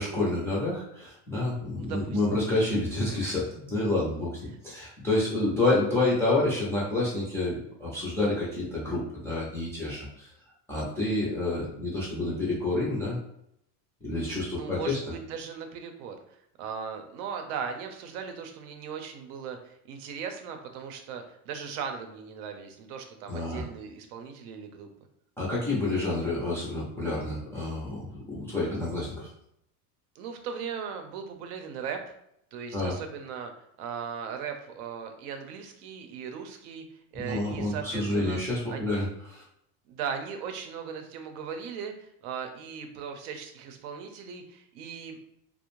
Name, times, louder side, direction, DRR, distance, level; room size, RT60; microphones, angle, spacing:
voice 1, 0.0-4.4 4.6-10.3 10.7-13.2 14.0-15.0 23.3-23.6 25.4-29.3 32.7-33.0 37.1-39.4, left 2 dB, 5° left, -8 dB, 0.3 m, -28 dB
voice 2, 1.7-2.5 14.5-16.2 16.6-24.9 30.2-32.1 32.5-33.5 33.8-36.8 37.1-38.4 38.7-38.9 39.9-45.2, right 6 dB, 75° right, 5 dB, 0.6 m, -38 dB
2.4 x 2.1 x 3.0 m, 0.75 s
cardioid pair, 145°, 45 cm